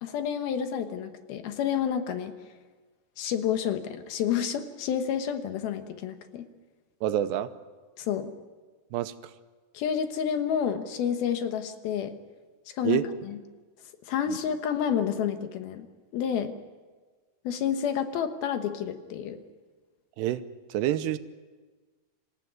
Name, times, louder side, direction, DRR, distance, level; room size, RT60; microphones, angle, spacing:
voice 1, 0.0-2.3 3.2-6.5 8.0-8.3 9.7-12.1 12.7-13.4 14.1-15.9 16.1-16.5 17.4-19.4, left 8 dB, 70° left, 8 dB, 2.9 m, -29 dB
voice 2, 7.0-7.5 8.9-9.1 12.8-13.0 14.3-14.4 20.2-20.4 20.7-21.2, right 12 dB, 90° right, 11 dB, 3.0 m, -27 dB
26.5 x 15.0 x 9.4 m, 1.4 s
omnidirectional pair, 4.8 m